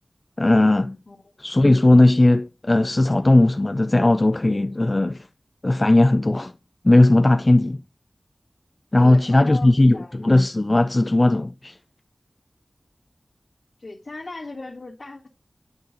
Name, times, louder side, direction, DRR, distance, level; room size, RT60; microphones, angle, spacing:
voice 1, 0.4-1.0 1.4-5.2 5.6-6.5 6.8-7.8 8.9-11.8, left 2 dB, 40° left, 0.3 m, -17 dB
voice 2, 9.0-10.2 13.8-15.3, left 2 dB, 80° left, 1.7 m, -37 dB
10.5 x 3.9 x 4.0 m
wide cardioid pair, 45°, 0 cm